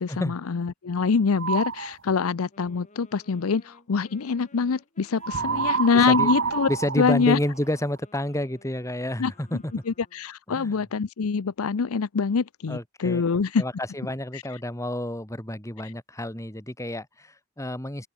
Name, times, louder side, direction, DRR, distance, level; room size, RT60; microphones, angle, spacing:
voice 1, 0.0-6.7 7.0-7.4 9.2-9.3 9.9-13.6 14.3-14.4, left 5 dB, 80° left, 0.6 m, -25 dB
sound 1, 1.3-1.9 5.2-8.0, right 5 dB, 60° right, 1.1 m, -27 dB
Wind instrument woodwind instrument, 2.0-10.3, left 2 dB, 35° left, 6.9 m, -56 dB
voice 2, 5.4-5.7 6.1-6.3 6.7-9.7 10.5-10.8 12.7-13.2 13.6-18.1, left 1 dB, 15° left, 3.0 m, -30 dB
open air
head